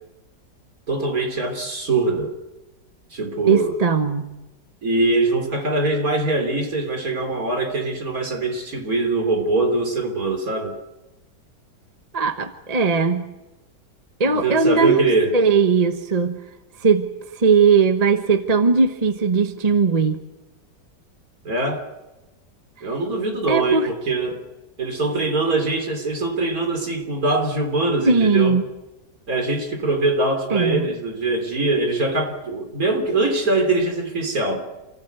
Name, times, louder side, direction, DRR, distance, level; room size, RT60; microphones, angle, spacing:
voice 1, 0.9-2.3 3.1-3.8 4.8-10.7 14.2-15.3 21.4-21.8 22.8-24.4 24.8-28.6 29.3-34.6, right 2 dB, 55° right, 5 dB, 4.0 m, -22 dB
voice 2, 3.5-4.3 12.1-13.2 14.2-15.1 15.3-16.4 16.8-20.2 23.5-23.9 28.1-28.6 30.5-30.9, right 5 dB, 25° right, 8 dB, 1.0 m, -19 dB
28.0 x 16.0 x 8.2 m, 1.0 s
omnidirectional pair, 1.8 m